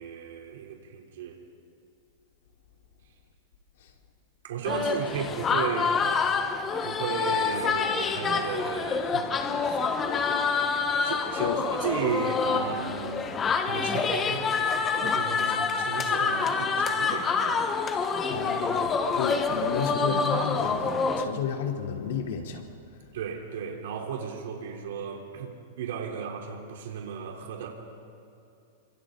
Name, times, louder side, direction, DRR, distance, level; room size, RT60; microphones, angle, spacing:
voice 1, 0.0-1.4 4.4-6.0 6.6-9.8 11.0-13.3 13.6-17.8 19.2-19.4 23.1-27.7, right 7 dB, 75° right, 1 dB, 3.5 m, -35 dB
sound 1, 4.7-21.2, left 5 dB, 20° left, 1.2 m, -27 dB
voice 2, 18.3-22.6, left 7 dB, 70° left, 1 dB, 3.3 m, -32 dB
29.0 x 25.5 x 3.9 m, 2.6 s
supercardioid pair, 155°, 0 cm